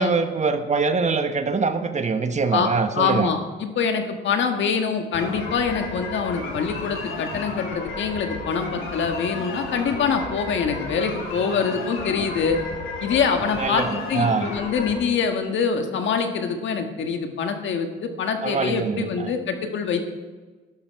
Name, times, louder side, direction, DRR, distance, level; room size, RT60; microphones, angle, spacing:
voice 1, 0.0-3.3 13.6-14.5 18.4-19.3, right 4 dB, 35° right, 8 dB, 1.2 m, -23 dB
voice 2, 2.9-12.6 13.0-20.1, left 6 dB, 70° left, 5 dB, 1.6 m, -25 dB
sound 1, 5.1-15.0, left 3 dB, 85° left, 3.5 m, -33 dB
12.0 x 12.0 x 4.7 m, 1.3 s
cardioid pair, 90°, 20 cm